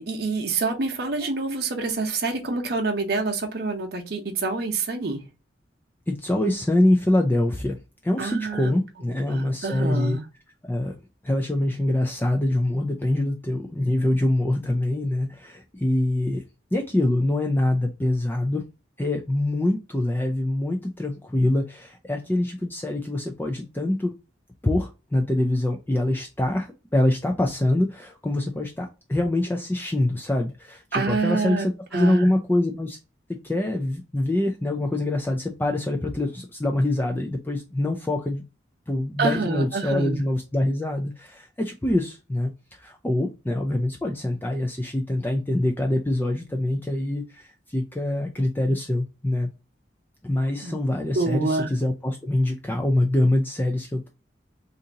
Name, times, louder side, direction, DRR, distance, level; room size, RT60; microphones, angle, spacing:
voice 1, 0.0-5.2 8.2-8.7 9.3-10.2 30.9-32.3 39.2-40.2 50.6-50.8 51.1-51.7, right 3 dB, 55° right, 0.8 m, -27 dB
voice 2, 6.1-10.2 10.7-11.0 11.2-16.4 16.7-18.6 19.0-24.1 24.6-33.0 33.4-38.4 38.9-49.5 50.2-54.1, left 1 dB, 10° left, 0.3 m, -24 dB
2.7 x 2.5 x 3.8 m
head